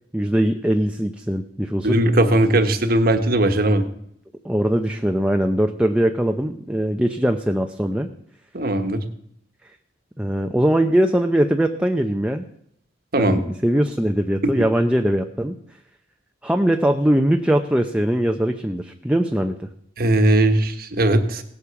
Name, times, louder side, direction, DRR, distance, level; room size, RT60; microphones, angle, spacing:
voice 1, 0.1-2.0 4.4-8.1 10.2-12.5 13.2-15.6 16.4-19.7, right 1 dB, 5° right, 4 dB, 0.6 m, -21 dB
voice 2, 1.8-3.8 8.5-9.0 13.1-13.4 14.4-14.5 20.0-21.4, right 1 dB, 55° right, 8 dB, 1.4 m, -18 dB
17.5 x 8.4 x 7.1 m, 0.70 s
head